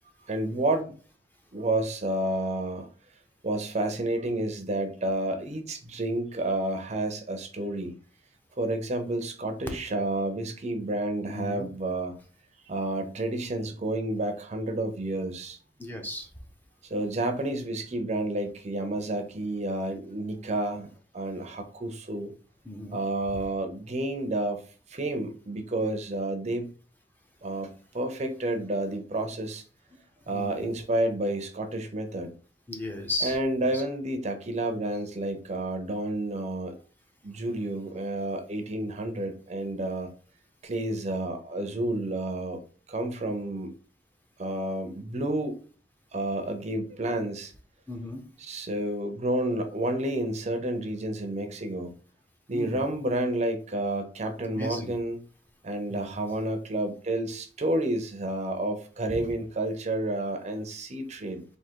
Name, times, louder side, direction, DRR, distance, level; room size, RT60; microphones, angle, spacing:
voice 1, 0.3-0.9 1.5-2.9 3.4-8.0 8.6-12.2 12.7-15.6 16.9-20.9 21.1-22.3 22.9-24.6 24.9-26.7 27.4-27.7 27.9-29.6 30.3-32.3 33.2-36.8 37.2-40.1 40.6-42.6 42.9-43.7 44.4-45.6 46.1-47.5 48.4-52.0 52.5-55.2 55.6-61.4, right 1 dB, 40° right, 0.6 m, -30 dB
voice 2, 11.3-11.7 15.8-16.3 22.6-23.0 23.3-23.4 30.3-30.7 32.7-33.4 33.7-33.8 47.9-48.2 52.5-52.8 54.5-54.9 55.9-56.0 59.1-59.3, left 1 dB, 10° left, 0.7 m, -35 dB
3.6 x 2.7 x 4.5 m
head